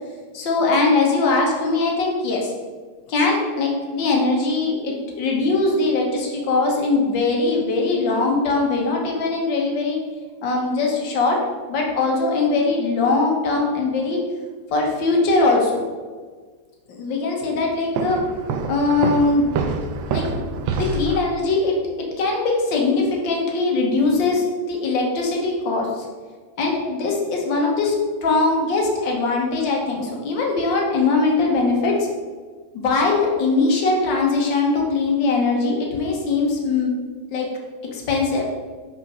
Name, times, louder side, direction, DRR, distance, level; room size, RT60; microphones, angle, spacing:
voice 1, 0.3-2.5 3.1-10.0 10.4-11.4 11.7-14.2 14.7-15.8 16.9-18.2 18.7-19.5 20.1-20.3 20.6-21.7 22.2-26.1 26.6-27.9 28.2-32.0 32.7-36.9 37.3-37.5 37.9-38.5, left 3 dB, 60° left, -1 dB, 1.8 m, -21 dB
Walk footsteps, 18.0-21.3, right 4 dB, 70° right, 1.3 m, -26 dB
5.7 x 4.5 x 6.0 m, 1.5 s
omnidirectional pair, 2.4 m